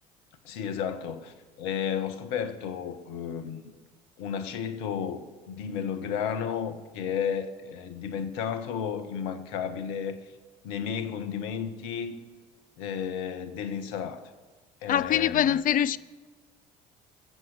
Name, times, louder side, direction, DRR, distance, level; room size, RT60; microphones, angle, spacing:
voice 1, 0.4-3.6 4.2-10.2 10.6-12.2 12.8-14.2 14.8-15.6, left 7 dB, 65° left, 1.3 m, -33 dB
voice 2, 14.9-16.0, left 10 dB, 45° left, 0.6 m, -23 dB
22.0 x 7.8 x 8.2 m
figure-of-eight pair, 55°, 20 cm